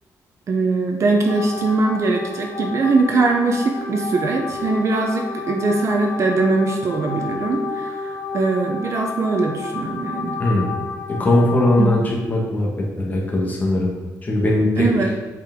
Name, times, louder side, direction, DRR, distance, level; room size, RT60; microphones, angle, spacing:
voice 1, 0.5-10.3 11.8-12.1 14.8-15.1, right 3 dB, 50° right, 3 dB, 0.8 m, -21 dB
sound 1, 1.3-12.0, left 4 dB, 60° left, 1.9 m, -31 dB
voice 2, 10.4-10.8 11.1-12.7 13.0-13.9 14.2-14.9, left 1 dB, 25° left, -2 dB, 1.6 m, -19 dB
8.1 x 5.1 x 3.7 m, 1.3 s
wide cardioid pair, 160°, 7 cm